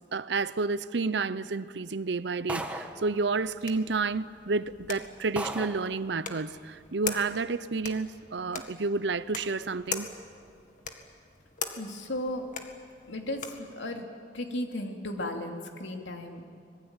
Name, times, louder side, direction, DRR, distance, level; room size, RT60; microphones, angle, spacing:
voice 1, 0.0-10.1, right 4 dB, 70° right, 0.7 m, -30 dB
sound 1, 2.5-3.1 4.1-4.2 4.7-4.9 5.4-5.9, right 1 dB, 5° right, 1.5 m, -35 dB
sound 2, 3.0-13.7, left 6 dB, 45° left, 2.0 m, -42 dB
voice 2, 11.8-12.5 13.1-14.1 14.3-16.4, left 1 dB, 80° left, 2.9 m, -35 dB
25.5 x 21.0 x 9.0 m
head